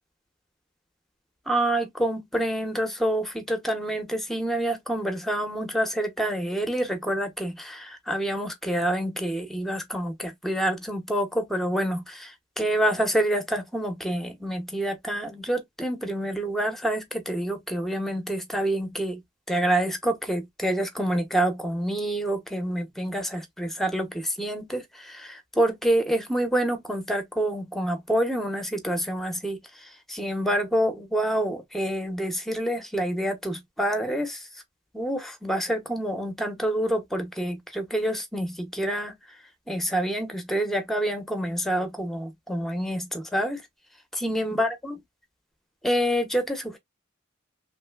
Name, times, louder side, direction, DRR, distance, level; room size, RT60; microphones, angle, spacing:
voice 1, 1.5-19.2 19.5-34.5 34.9-39.1 39.7-43.6 44.1-45.0 45.8-46.8, right 1 dB, ahead, 0.6 m, -27 dB
3.1 x 2.6 x 2.3 m
head